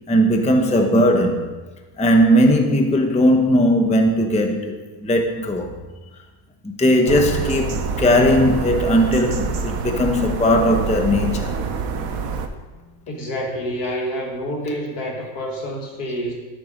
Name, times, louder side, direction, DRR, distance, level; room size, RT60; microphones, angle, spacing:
voice 1, 0.1-1.5 2.0-5.8 6.6-11.5, equal, 5° left, 0.6 m, -18 dB
sound 1, 7.1-12.5, right 5 dB, 70° right, 1.2 m, -26 dB
voice 2, 13.1-16.3, equal, 85° left, 2.0 m, -28 dB
13.0 x 7.0 x 5.2 m
omnidirectional pair, 1.6 m